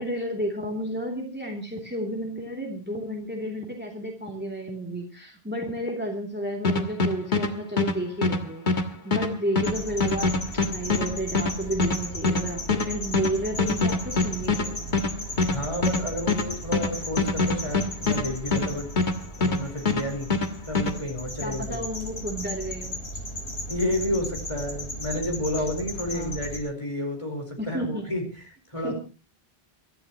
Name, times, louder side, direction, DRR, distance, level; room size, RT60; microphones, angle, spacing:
voice 1, 0.0-15.0 21.4-23.0 26.1-26.3 27.6-28.0 28.8-28.9, equal, 10° right, 1 dB, 2.9 m, -32 dB
sound 1, 6.6-19.6 19.9-21.0, left 3 dB, 50° left, 1.7 m, -24 dB
sound 2, 9.6-26.6, equal, 85° left, 4.5 m, -36 dB
voice 2, 15.4-18.9 19.4-20.3 20.7-21.8 23.7-28.2 28.7-28.9, left 1 dB, 30° left, 3 dB, 4.6 m, -30 dB
24.0 x 13.5 x 3.0 m, 0.33 s
omnidirectional pair, 1.1 m